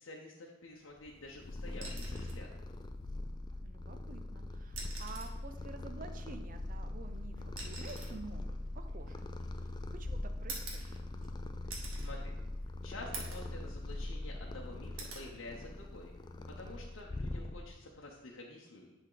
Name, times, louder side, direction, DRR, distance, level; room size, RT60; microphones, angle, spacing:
voice 1, 0.0-2.5 12.0-12.3 12.8-16.1 16.6-18.9, left 2 dB, 70° left, -1 dB, 0.8 m, -49 dB
Purr, 1.0-17.9, left 2 dB, 20° left, 0.3 m, -42 dB
sound 1, 1.8-2.4 3.9-4.0 4.6-5.4 6.6-9.7 10.5-11.3 11.7-12.1 12.6-12.7 13.1-13.5 13.9-14.6 15.0-15.3 16.8-17.0, right 3 dB, 90° right, 1.6 m, -46 dB
voice 2, 3.6-9.2 9.6-10.9, right 3 dB, 40° right, 7 dB, 0.6 m, -50 dB
10.5 x 3.5 x 3.9 m, 1.0 s
head